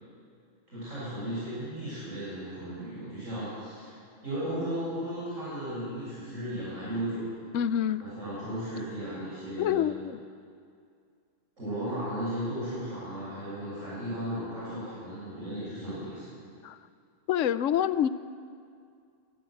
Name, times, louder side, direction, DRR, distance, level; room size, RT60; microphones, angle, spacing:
voice 1, 0.7-3.9 4.2-7.4 8.0-9.9 11.6-16.2, right 1 dB, 90° right, -10 dB, 7.7 m, -35 dB
voice 2, 7.5-8.1 9.6-10.2 16.6-16.8 17.3-18.1, left 10 dB, 80° left, 14 dB, 1.0 m, -27 dB
24.0 x 13.5 x 7.9 m, 2.3 s
omnidirectional pair, 1.3 m